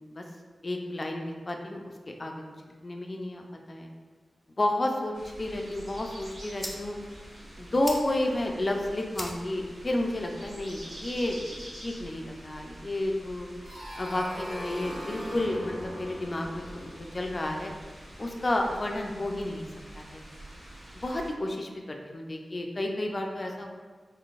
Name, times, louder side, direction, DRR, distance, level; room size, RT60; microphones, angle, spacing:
voice 1, 0.6-1.8 2.2-2.4 2.8-3.9 4.6-5.1 5.4-7.0 7.6-13.5 14.0-17.7 18.2-19.7 19.9-20.2 21.0-23.7, left 1 dB, 40° left, 2 dB, 0.4 m, -31 dB
sound 1, 5.1-21.3, right 1 dB, 90° right, 1.3 m, -47 dB
sound 2, 6.0-12.0, equal, 15° right, 0.6 m, -45 dB
sound 3, 13.7-18.3, equal, 50° right, 0.9 m, -41 dB
3.8 x 2.6 x 2.4 m, 1.5 s
cardioid pair, 60°, 0 cm